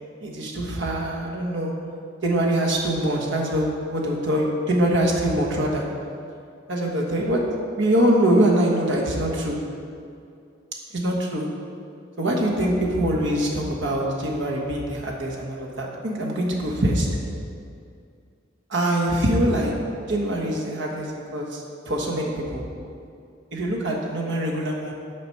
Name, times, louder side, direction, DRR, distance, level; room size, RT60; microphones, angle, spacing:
voice 1, 0.2-1.7 2.2-5.8 6.7-7.4 7.8-9.6 10.9-11.5 12.2-17.1 18.7-19.7 20.1-22.6 23.5-24.9, right 1 dB, 65° right, -2 dB, 1.3 m, -23 dB
7.6 x 4.9 x 5.7 m, 2.4 s
head